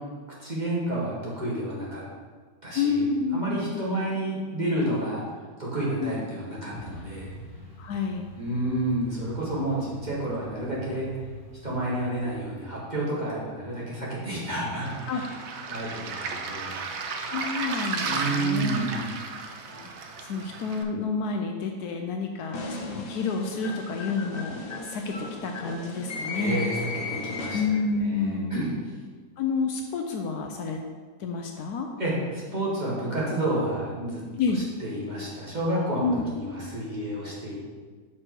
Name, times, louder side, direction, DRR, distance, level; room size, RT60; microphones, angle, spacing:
voice 1, 0.4-2.0 2.6-3.1 3.3-5.2 5.6-7.3 8.4-11.1 11.6-15.3 15.7-16.8 18.0-19.1 26.3-27.6 28.0-28.9 32.0-34.2 34.5-37.6, right 1 dB, 25° right, -6 dB, 1.4 m, -30 dB
voice 2, 2.7-3.9 6.0-6.3 7.8-8.3 15.1-15.2 17.3-18.9 19.7-19.9 20.3-26.7 27.5-28.5 29.4-30.8 31.2-31.9 34.4-34.6 36.0-36.2, left 4 dB, 75° left, 3 dB, 1.0 m, -29 dB
Truck, 6.7-12.3, right 1 dB, 35° left, 1.2 m, -44 dB
Waves surf, 14.8-20.8, right 4 dB, 65° right, 0.7 m, -34 dB
sound 1, 22.5-28.0, left 2 dB, 55° left, 0.6 m, -36 dB
6.3 x 4.4 x 4.6 m, 1.5 s
omnidirectional pair, 1.8 m